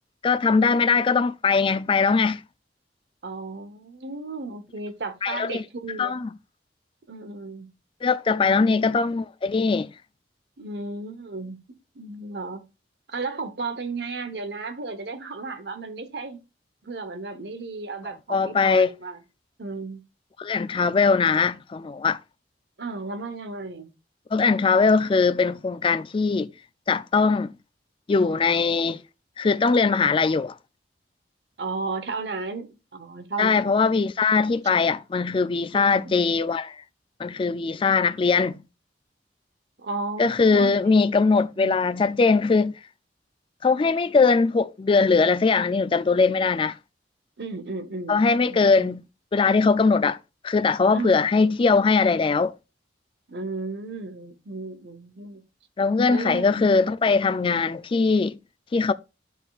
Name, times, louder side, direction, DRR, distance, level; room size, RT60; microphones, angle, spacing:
voice 1, 0.2-2.4 5.2-5.6 6.0-6.3 8.0-9.9 18.3-18.9 20.4-22.2 24.3-26.5 26.9-27.5 28.1-29.0 29.4-30.6 33.4-36.8 37.2-38.6 40.2-42.7 43.6-46.8 48.1-49.1 49.3-50.2 50.4-52.5 55.8-58.4 58.7-58.9, left 4 dB, 30° left, 0.3 m, -21 dB
voice 2, 3.2-6.1 7.1-7.7 10.6-11.6 11.9-12.6 13.1-16.4 16.8-19.2 19.6-20.0 22.8-23.9 31.6-33.7 35.7-36.1 39.8-41.1 41.5-41.8 47.4-48.2 48.5-48.9 50.9-51.1 53.3-55.4 56.1-56.7 57.4-57.6, right 3 dB, 65° right, 1.0 m, -34 dB
12.0 x 4.0 x 2.4 m
head